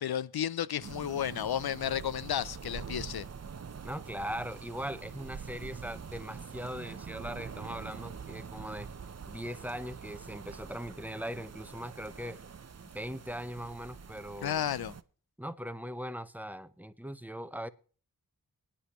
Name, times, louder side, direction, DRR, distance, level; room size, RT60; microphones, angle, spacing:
voice 1, 0.0-3.3 14.4-14.9, left 10 dB, 85° left, 0.6 m, -32 dB
sound 1, 0.8-15.0, right 6 dB, 45° right, 0.7 m, -45 dB
voice 2, 3.8-8.9 9.3-12.4 12.9-14.6 15.4-17.7, equal, 5° right, 0.7 m, -40 dB
22.5 x 10.0 x 3.0 m
wide cardioid pair, 90°, 36 cm